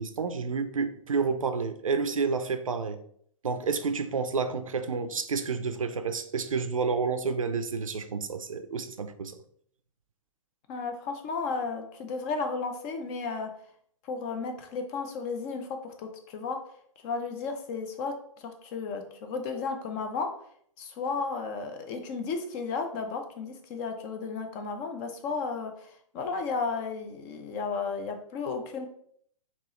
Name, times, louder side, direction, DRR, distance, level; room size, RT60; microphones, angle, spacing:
voice 1, 0.0-3.0 3.4-9.4, right 5 dB, 80° right, 0.5 m, -30 dB
voice 2, 10.7-13.5 14.0-16.6 17.0-20.3 20.8-28.9, left 4 dB, 30° left, 0.6 m, -33 dB
4.4 x 2.9 x 3.1 m
figure-of-eight pair, 120°, 17 cm